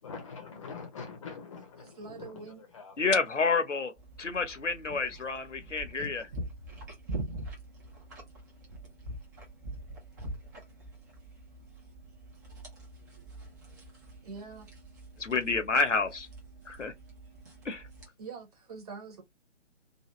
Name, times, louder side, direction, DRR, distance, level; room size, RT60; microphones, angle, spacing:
voice 1, 0.0-3.2 4.2-4.4 4.9-5.3 6.0-6.1, left 5 dB, 25° left, 0.8 m, -45 dB
voice 2, 1.8-2.6 14.2-14.7 18.2-19.2, right 4 dB, 30° right, 1.4 m, -44 dB
voice 3, 3.0-3.9 4.2-6.2 15.2-16.3 16.7-16.9 17.6-17.8, left 4 dB, 80° left, 1.0 m, -29 dB
sound 1, 4.0-18.1, right 1 dB, 15° right, 0.8 m, -44 dB
2.9 x 2.6 x 3.0 m
figure-of-eight pair, 145°, 36 cm